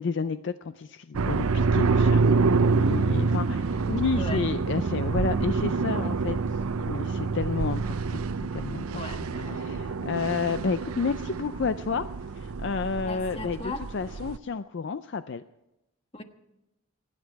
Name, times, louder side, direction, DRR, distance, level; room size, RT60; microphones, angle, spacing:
voice 1, 0.0-8.2 8.5-9.0 9.6-12.0 12.3-15.4, left 5 dB, 55° left, 12 dB, 0.4 m, -31 dB
sound 1, 1.1-14.4, right 4 dB, 85° right, 0.6 m, -27 dB
voice 2, 8.9-9.7 13.0-13.8 16.1-16.2, left 2 dB, 25° left, 6 dB, 1.3 m, -37 dB
28.0 x 9.7 x 4.6 m, 0.94 s
head